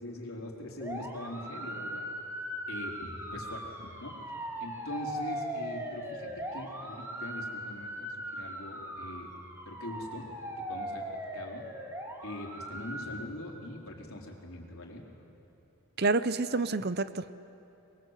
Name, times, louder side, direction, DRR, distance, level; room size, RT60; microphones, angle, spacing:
voice 1, 0.0-2.1 2.7-4.2 4.6-9.3 9.7-10.3 10.7-11.7 12.2-15.1, left 1 dB, 70° left, 0 dB, 4.1 m, -42 dB
sound 1, 0.8-13.3, equal, 10° right, 2.2 m, -39 dB
voice 2, 16.0-17.3, right 3 dB, 45° right, 14 dB, 0.7 m, -28 dB
26.5 x 22.5 x 8.2 m, 2.9 s
head